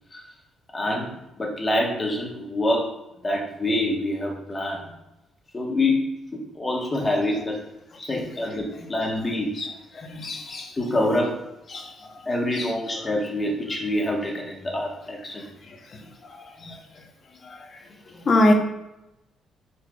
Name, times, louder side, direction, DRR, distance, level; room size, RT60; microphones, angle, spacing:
voice 1, 0.7-1.1 1.4-2.9 3.2-4.9 5.5-7.6 8.0-9.6 10.8-11.4 12.2-15.4, left 1 dB, 25° left, 1.1 m, -26 dB
voice 2, 10.1-10.7 11.7-11.9 12.6-12.7 16.6-16.7 18.3-18.5, left 1 dB, 45° left, 0.8 m, -21 dB
4.6 x 4.3 x 2.3 m
cardioid pair, 90°, 0 cm